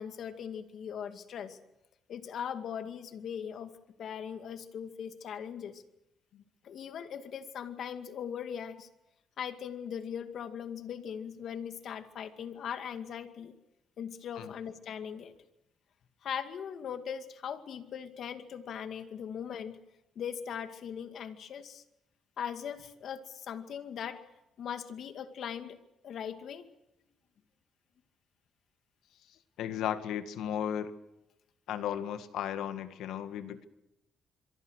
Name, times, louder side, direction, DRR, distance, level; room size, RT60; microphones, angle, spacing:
voice 1, 0.0-1.6 2.1-3.7 4.0-5.8 6.6-8.9 9.4-13.5 14.0-15.3 16.2-19.8 20.2-21.8 22.4-24.2 24.6-25.8 26.0-26.7, left 8 dB, 65° left, 8 dB, 2.3 m, -39 dB
voice 2, 29.6-30.9 31.7-33.7, left 10 dB, 85° left, 10 dB, 1.9 m, -35 dB
26.5 x 23.0 x 6.5 m, 0.89 s
cardioid pair, 90°, 0 cm